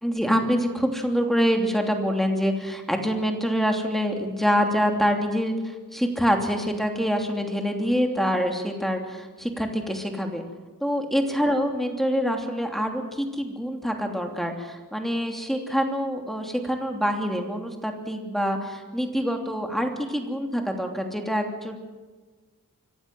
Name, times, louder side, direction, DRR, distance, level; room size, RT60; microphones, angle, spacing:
voice 1, 0.0-10.4 10.8-21.8, equal, ahead, 3 dB, 3.0 m, -25 dB
26.0 x 15.0 x 7.7 m, 1.3 s
wide cardioid pair, 70°, 34 cm